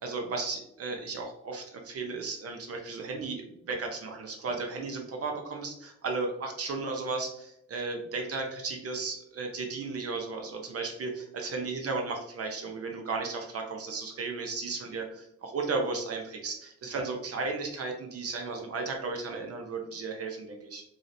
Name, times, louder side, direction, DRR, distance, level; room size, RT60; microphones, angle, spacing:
voice 1, 0.0-20.8, right 4 dB, 50° right, 2 dB, 0.7 m, -35 dB
4.8 x 2.8 x 2.6 m, 0.78 s
cardioid pair, 90°, 30 cm